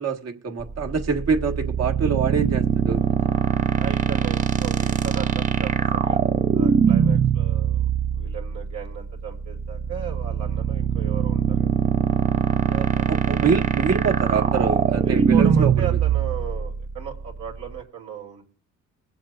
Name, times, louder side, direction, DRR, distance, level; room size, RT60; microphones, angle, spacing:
voice 1, 0.0-3.0 12.7-16.0, right 5 dB, 55° right, 1.6 m, -25 dB
sound 1, 0.6-17.8, right 7 dB, 25° right, 0.6 m, -22 dB
voice 2, 3.8-6.2 6.5-7.8 8.2-11.7 13.0-13.1 15.0-18.4, right 8 dB, 80° right, 3.1 m, -36 dB
21.5 x 7.6 x 2.5 m
cardioid pair, 90°, 30 cm